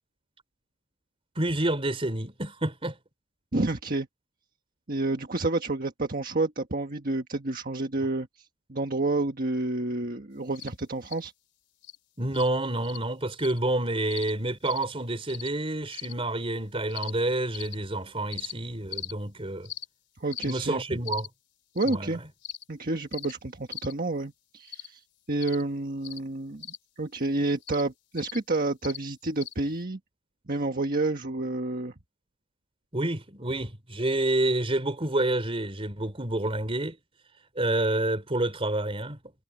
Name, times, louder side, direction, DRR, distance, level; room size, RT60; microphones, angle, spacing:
voice 1, 1.4-3.0 12.2-19.7 20.4-21.3 21.9-22.1 32.9-37.0 37.6-39.2, right 1 dB, 25° right, 4.0 m, -28 dB
voice 2, 3.5-4.1 4.9-11.3 20.2-21.0 21.7-22.2 22.7-26.7 27.0-30.0 30.5-31.9, right 2 dB, 40° right, 1.4 m, -29 dB
sound 1, 10.6-10.7 11.1-11.2 11.8-12.0 12.3-12.5 12.8-13.0 13.4-13.6 14.1-14.3 14.7-14.8 15.3-15.5 15.9-16.1 16.9-17.1 17.5-17.7 18.3-18.5 18.9-19.1 19.7-19.9 20.3-20.5 21.1-21.3 21.8-22.0 22.4-22.6 23.1-23.3 23.7-23.9 24.7-24.9 25.4-25.6 26.0-26.2 26.6-26.8 27.6-27.8 28.2-28.4 28.8-29.0 29.4-29.5, left 10 dB, 55° left, 2.8 m, -39 dB
head